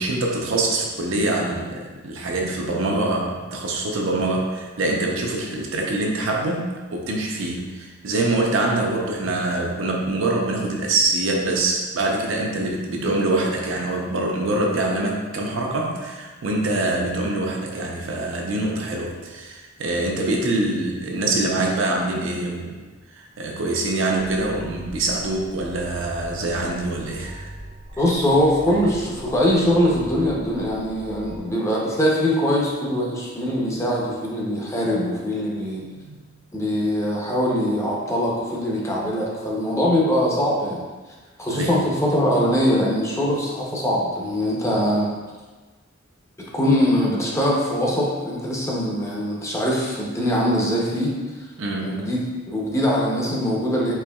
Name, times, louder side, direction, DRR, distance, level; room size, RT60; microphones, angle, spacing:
voice 1, 0.0-22.8 23.2-27.5 36.0-36.2 41.5-41.7 51.6-52.0, right 2 dB, 70° right, 0 dB, 0.6 m, -24 dB
sound 1, 24.2-31.4, right 1 dB, 75° left, 0.8 m, -40 dB
voice 2, 28.0-35.8 36.5-40.8 41.4-45.1 46.4-51.5 51.8-53.9, equal, 15° left, -4 dB, 0.6 m, -22 dB
4.4 x 3.0 x 2.2 m, 1.3 s
head